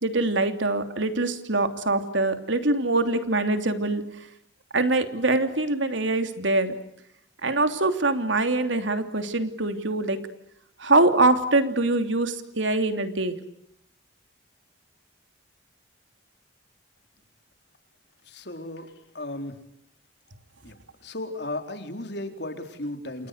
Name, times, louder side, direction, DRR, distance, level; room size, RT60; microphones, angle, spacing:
voice 1, 0.0-4.0 4.7-6.7 7.4-10.2 10.8-13.4, right 2 dB, 80° right, 8 dB, 3.2 m, -23 dB
voice 2, 18.3-19.6 20.6-20.8 21.0-23.3, left 1 dB, 60° left, 7 dB, 4.1 m, -35 dB
30.0 x 28.0 x 6.7 m, 0.73 s
head